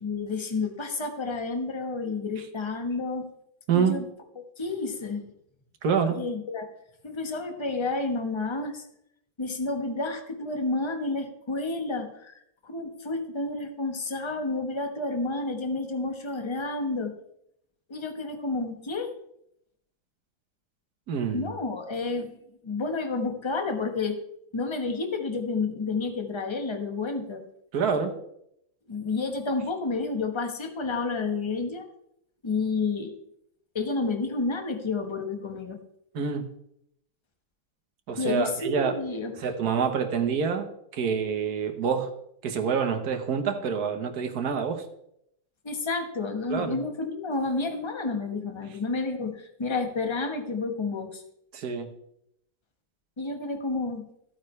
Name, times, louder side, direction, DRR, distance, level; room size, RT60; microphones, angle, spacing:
voice 1, 0.0-3.3 3.7-4.1 4.6-5.3 6.1-6.7 7.0-8.9 9.4-17.1 17.9-19.1 21.3-22.3 22.6-24.2 24.5-27.4 28.9-31.9 32.4-33.1 33.7-35.8 38.2-39.3 45.6-51.2 53.2-54.0, left 3 dB, 20° left, 5 dB, 0.9 m, -30 dB
voice 2, 3.7-4.0 5.8-6.2 21.1-21.5 27.7-28.2 36.1-36.5 38.1-39.0 39.4-42.1 42.4-44.8 46.5-46.8 51.5-51.9, right 6 dB, 55° right, 6 dB, 1.5 m, -27 dB
15.0 x 8.9 x 3.2 m, 0.75 s
omnidirectional pair, 2.2 m